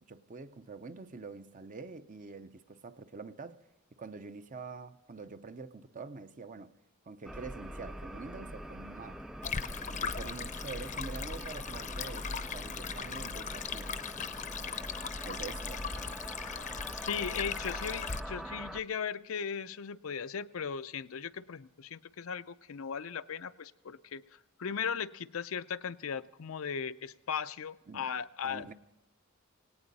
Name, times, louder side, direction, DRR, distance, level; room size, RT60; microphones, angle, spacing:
voice 1, 0.0-3.6 4.0-6.7 7.1-9.2 9.9-13.9 15.3-16.1 27.9-28.1 28.4-28.7, right 4 dB, 40° right, 0.7 m, -46 dB
sound 1, 7.2-18.8, right 1 dB, ahead, 0.5 m, -43 dB
Stream, 9.4-18.2, left 6 dB, 35° left, 0.6 m, -39 dB
voice 2, 16.9-28.7, left 7 dB, 75° left, 0.5 m, -37 dB
18.5 x 17.5 x 4.1 m
head